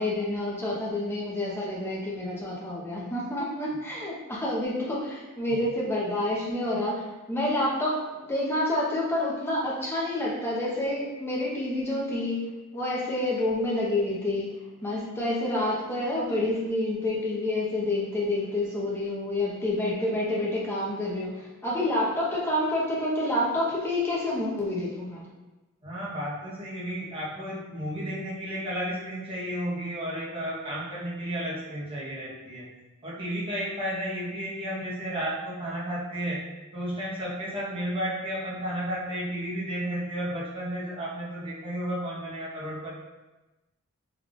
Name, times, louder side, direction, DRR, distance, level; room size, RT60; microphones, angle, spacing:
voice 1, 0.0-7.0 7.3-12.4 12.7-14.5 14.8-25.2, left 1 dB, 10° left, -5 dB, 0.7 m, -28 dB
voice 2, 25.8-32.7 33.0-36.4 36.7-42.9, equal, 25° right, -6 dB, 0.8 m, -33 dB
3.4 x 2.3 x 3.6 m, 1.1 s
head